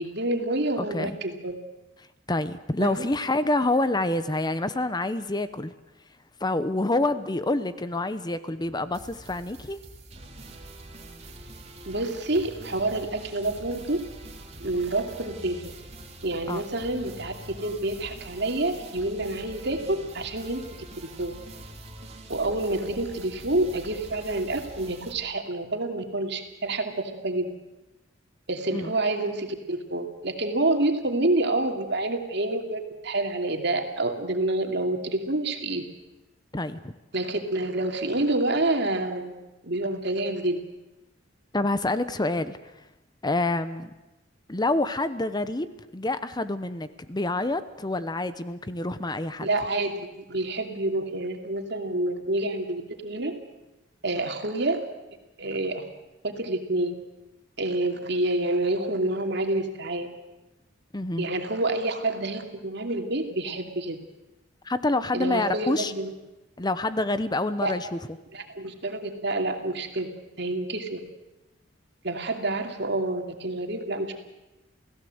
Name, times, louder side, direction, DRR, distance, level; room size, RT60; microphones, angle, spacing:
voice 1, 0.0-1.6 2.8-3.1 11.9-14.0 14.6-15.7 16.2-20.7 21.0-21.3 22.3-27.5 28.5-35.8 37.1-39.3 39.6-40.6 49.4-53.3 54.0-54.8 55.4-55.8 56.2-56.9 57.6-60.1 61.2-64.0 65.1-66.1 67.6-67.7 68.3-70.1 70.4-71.0 72.0-74.1, right 2 dB, 65° right, 5 dB, 2.7 m, -28 dB
voice 2, 0.8-1.2 2.3-5.7 6.4-9.8 16.5-16.6 28.7-28.9 36.5-36.9 41.5-42.6 43.2-43.9 44.5-49.5 60.9-61.3 64.6-65.9 66.6-68.0, left 2 dB, 20° left, 13 dB, 0.8 m, -27 dB
sound 1, 8.6-25.1, right 2 dB, 35° right, 3.1 m, -44 dB
29.0 x 16.5 x 7.9 m, 1.0 s
head